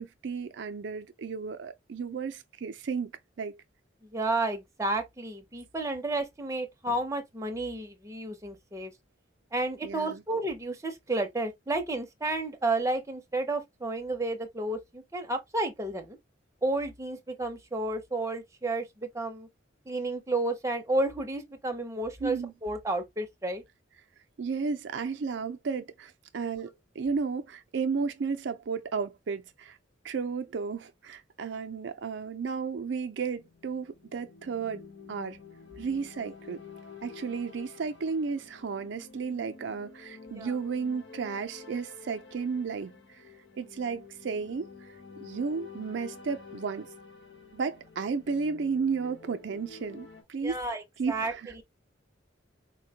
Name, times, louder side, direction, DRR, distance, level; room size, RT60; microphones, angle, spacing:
voice 1, 0.0-3.1 3.4-3.6 9.8-10.2 22.2-22.5 24.4-29.8 30.0-34.8 35.1-35.4 35.8-36.6 37.0-42.9 43.6-44.7 45.2-46.9 47.5-50.6 51.0-51.5, right 5 dB, 70° right, 0.4 m, -33 dB
voice 2, 4.1-8.9 9.5-16.2 16.6-19.5 19.9-23.6 40.3-40.5 50.4-51.3, right 2 dB, 15° right, 0.6 m, -31 dB
sound 1, 33.4-50.2, left 5 dB, 70° left, 0.9 m, -49 dB
4.4 x 2.2 x 2.7 m
head